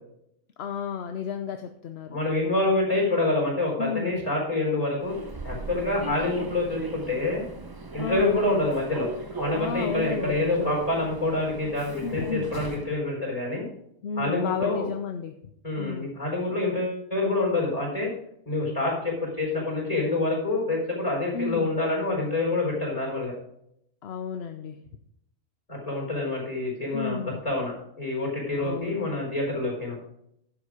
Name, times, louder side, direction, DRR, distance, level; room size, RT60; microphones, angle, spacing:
voice 1, 0.6-2.2 3.8-4.2 8.0-8.4 9.5-10.7 12.0-12.5 14.0-15.3 15.8-16.1 21.3-21.7 24.0-24.8 26.9-27.4 28.6-29.0, left 6 dB, 55° left, 7 dB, 0.8 m, -32 dB
voice 2, 2.1-5.1 5.4-7.4 7.9-9.1 9.4-13.7 14.2-14.9 15.6-18.1 18.4-23.3 25.7-27.2 27.4-30.0, left 2 dB, 25° left, -2 dB, 4.6 m, -27 dB
Human voice / Subway metro underground, 5.0-13.0, right 3 dB, 25° right, 0.6 m, -37 dB
11.5 x 6.9 x 5.0 m, 0.75 s
omnidirectional pair, 1.5 m